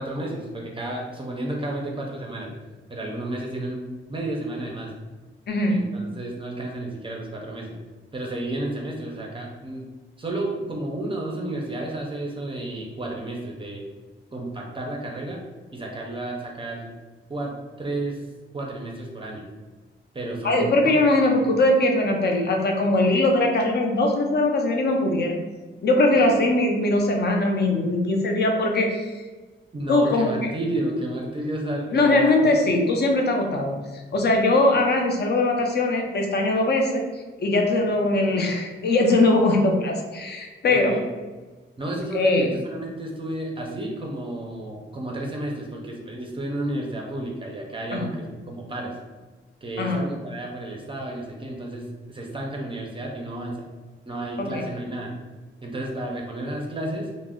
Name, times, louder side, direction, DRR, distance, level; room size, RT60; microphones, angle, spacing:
voice 1, 0.0-2.5 2.9-4.9 5.7-7.8 8.1-9.8 10.2-13.8 14.3-15.4 15.7-16.9 17.3-17.5 17.8-18.2 18.5-19.5 20.1-20.9 26.1-26.3 29.7-32.5 40.7-41.0 41.8-49.0 49.6-53.6 54.1-55.1 55.6-57.1, right 1 dB, 25° right, -1 dB, 0.5 m, -31 dB
voice 2, 5.5-5.9 20.4-25.4 25.8-29.1 29.9-30.5 31.9-33.8 34.1-37.0 37.4-41.0 42.1-42.5 47.9-48.1 49.8-50.0 54.4-54.6, left 2 dB, 50° left, 2 dB, 0.5 m, -21 dB
2.3 x 2.0 x 3.5 m, 1.3 s
wide cardioid pair, 110°, 21 cm